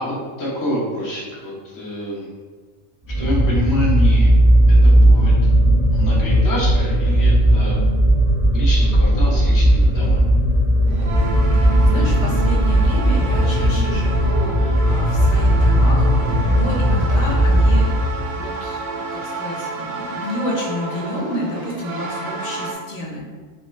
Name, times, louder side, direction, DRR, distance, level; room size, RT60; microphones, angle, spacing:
voice 1, 0.0-2.3 3.2-4.3 4.7-5.3 5.9-7.7 8.5-10.2, equal, 20° left, -7 dB, 0.7 m, -27 dB
sound 1, 3.0-18.4, equal, 25° right, 0.5 m, -16 dB
sound 2, 10.9-22.7, right 3 dB, 70° right, 1.0 m, -30 dB
voice 2, 11.5-17.9 18.3-23.3, left 1 dB, 65° left, -4 dB, 1.1 m, -30 dB
3.1 x 3.0 x 3.1 m, 1.4 s
omnidirectional pair, 1.4 m